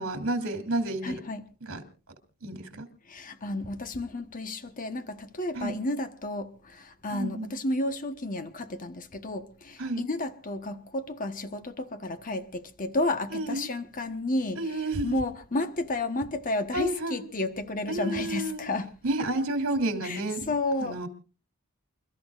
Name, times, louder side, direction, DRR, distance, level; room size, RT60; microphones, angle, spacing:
voice 1, 0.0-1.2 1.6-1.8 2.4-2.9 5.5-5.8 7.1-7.5 9.8-10.1 13.3-13.7 14.6-15.2 16.7-17.3 17.9-18.6 19.0-20.5 20.8-21.1, right 1 dB, 65° right, 2.9 m, -30 dB
voice 2, 1.0-1.5 3.1-18.9 20.0-20.2 20.5-21.1, left 2 dB, 40° left, 1.1 m, -32 dB
28.5 x 13.5 x 2.5 m
head